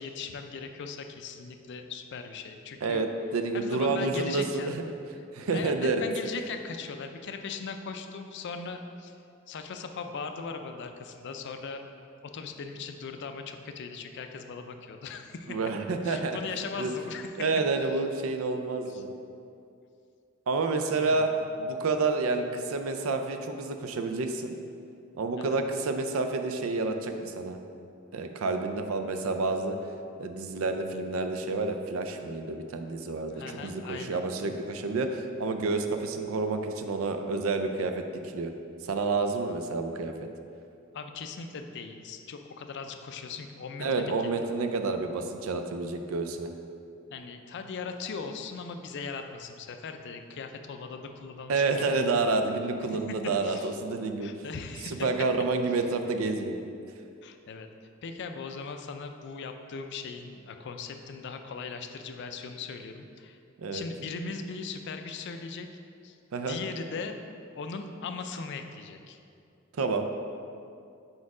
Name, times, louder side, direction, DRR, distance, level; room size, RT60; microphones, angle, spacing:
voice 1, 0.0-3.0 3.5-4.9 5.5-9.2 9.5-11.8 12.3-15.6 16.0-17.3 18.9-19.0 20.9-21.3 25.4-25.6 33.3-34.2 40.9-44.1 47.1-52.0 52.9-53.0 53.4-53.7 54.2-55.1 57.2-57.7 58.0-63.4 63.7-65.7 66.0-67.2 67.6-69.2, left 5 dB, 55° left, 6 dB, 0.4 m, -39 dB
voice 2, 2.8-4.8 5.3-6.0 15.5-16.4 16.8-16.9 17.4-19.1 20.5-21.3 21.6-24.5 25.2-27.6 28.1-29.8 30.2-38.0 38.3-38.5 38.9-40.1 43.8-46.5 51.5-54.3 54.8-56.6 63.6-63.8 66.3-66.6 69.8-70.1, right 3 dB, 75° right, 6 dB, 0.4 m, -29 dB
4.7 x 4.4 x 4.8 m, 2.5 s
head